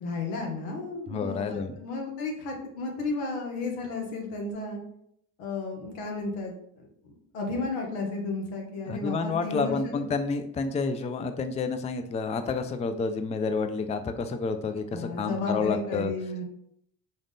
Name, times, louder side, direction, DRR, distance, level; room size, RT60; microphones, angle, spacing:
voice 1, 0.0-4.8 5.4-6.9 7.3-10.0 14.9-16.4, left 3 dB, 85° left, 1 dB, 1.0 m, -33 dB
voice 2, 1.1-1.8 8.9-16.1, left 4 dB, 15° left, 8 dB, 0.3 m, -29 dB
3.9 x 2.5 x 3.6 m, 0.74 s
hypercardioid pair, 60°, 41 cm